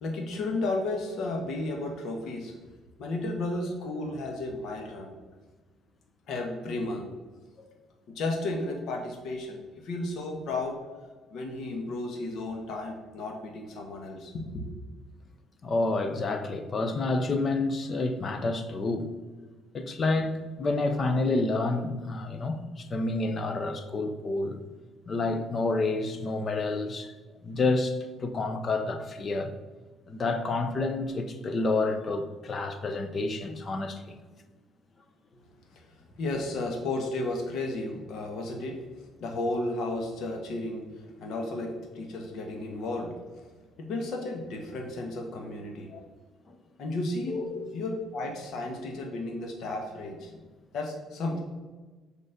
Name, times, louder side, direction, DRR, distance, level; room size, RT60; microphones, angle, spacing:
voice 1, 0.0-2.6 3.0-5.2 6.3-7.1 8.1-10.8 11.3-14.6 35.3-35.4 35.7-43.5 43.8-45.9 46.8-47.4 47.7-50.4 50.7-51.4, left 2 dB, 65° left, 2 dB, 1.4 m, -33 dB
voice 2, 15.6-19.1 19.7-24.6 25.1-27.1 27.4-29.5 30.1-34.2 45.9-46.0 46.5-46.6 47.3-47.7, left 3 dB, 35° left, 9 dB, 0.8 m, -29 dB
6.8 x 5.2 x 5.1 m, 1.3 s
cardioid pair, 125°, 0 cm